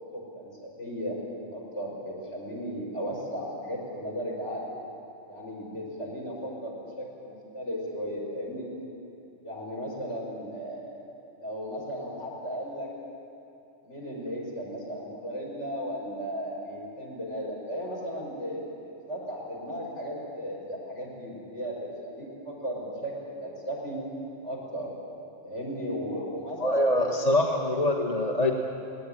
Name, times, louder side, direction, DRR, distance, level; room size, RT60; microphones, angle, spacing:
voice 1, 0.1-1.2 1.5-4.8 5.3-8.7 9.4-11.0 11.3-12.9 13.8-24.0 24.4-24.9 25.4-27.1, equal, 65° left, -4 dB, 6.0 m, -36 dB
voice 2, 26.6-28.5, left 1 dB, 35° left, 2 dB, 1.4 m, -24 dB
19.5 x 18.5 x 9.9 m, 2.7 s
omnidirectional pair, 1.3 m